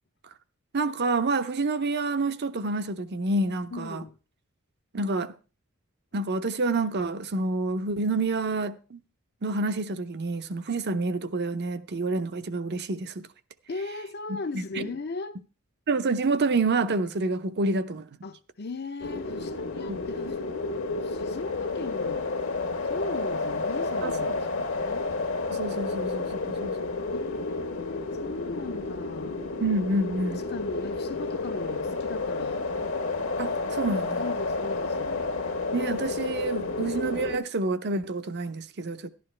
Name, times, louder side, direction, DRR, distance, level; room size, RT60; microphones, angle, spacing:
voice 1, 0.7-4.0 4.9-5.3 6.1-9.0 9.4-13.3 14.3-14.4 14.8-14.9 15.9-18.1 19.9-20.0 24.0-24.3 25.5-26.8 29.6-30.4 33.4-34.1 35.7-39.1, right 3 dB, 50° right, 0.6 m, -28 dB
voice 2, 3.7-4.2 13.7-15.4 18.2-20.4 21.0-22.3 22.9-25.1 27.1-29.4 30.3-32.7 33.8-35.2, left 3 dB, 50° left, 0.7 m, -38 dB
sound 1, 19.0-37.4, left 3 dB, 65° left, 1.3 m, -31 dB
12.0 x 11.5 x 3.3 m
head